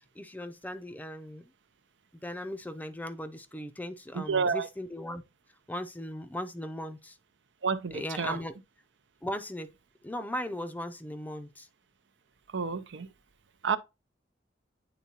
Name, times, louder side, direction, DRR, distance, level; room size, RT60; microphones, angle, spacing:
voice 1, 0.2-1.5 2.2-5.2 5.7-7.2 7.9-8.5 9.2-9.7 10.0-11.7, left 1 dB, 10° left, 0.4 m, -38 dB
voice 2, 4.1-4.7 7.6-8.4 12.5-13.1 13.6-13.8, right 5 dB, 80° right, 0.6 m, -30 dB
9.6 x 3.7 x 2.8 m
head